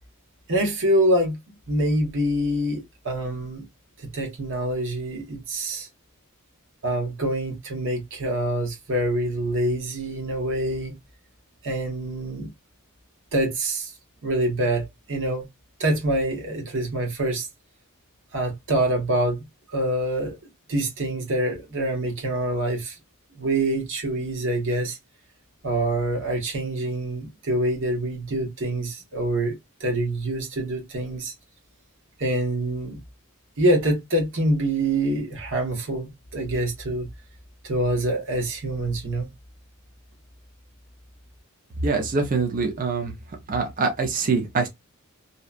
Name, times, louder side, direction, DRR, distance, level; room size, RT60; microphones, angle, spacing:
voice 1, 0.5-1.4 1.7-3.6 4.0-5.9 6.8-10.9 11.6-12.5 13.3-13.9 14.2-15.5 15.8-17.5 18.3-19.4 19.7-20.4 20.7-23.0 23.3-25.0 25.6-29.5 29.8-31.3 32.2-33.0 33.6-37.1 37.6-39.3, right 1 dB, 60° right, 1.0 m, -25 dB
voice 2, 41.8-43.1 43.5-44.7, right 4 dB, 40° right, 0.5 m, -24 dB
2.7 x 2.2 x 2.3 m
head